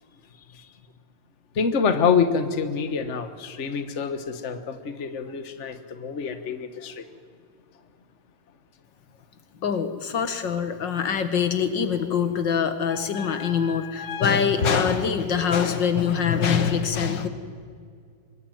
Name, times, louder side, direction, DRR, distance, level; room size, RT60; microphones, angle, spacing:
voice 1, 1.5-7.1 12.8-14.3 14.6-14.7, left 6 dB, 40° left, 9 dB, 1.6 m, -27 dB
voice 2, 9.6-17.3, left 7 dB, 85° left, 9 dB, 2.4 m, -24 dB
24.5 x 21.0 x 9.2 m, 2.2 s
omnidirectional pair, 1.9 m